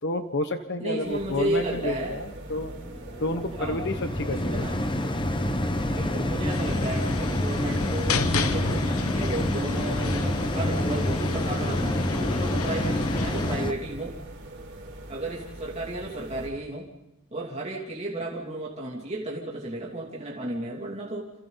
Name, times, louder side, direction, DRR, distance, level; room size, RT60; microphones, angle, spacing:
voice 1, 0.0-2.7 3.2-4.8, left 1 dB, 50° left, 7 dB, 1.2 m, -30 dB
voice 2, 0.8-2.2 3.5-3.9 4.3-4.8 5.9-14.2 15.1-16.9 17.3-21.3, right 1 dB, 30° right, -3 dB, 2.8 m, -33 dB
sound 1, 1.0-16.5, right 1 dB, 50° right, 4.9 m, -42 dB
sound 2, 2.5-13.7, left 1 dB, 20° left, 1.0 m, -28 dB
sound 3, 6.5-13.6, left 4 dB, 75° left, 1.1 m, -33 dB
29.0 x 27.5 x 4.1 m, 0.92 s
head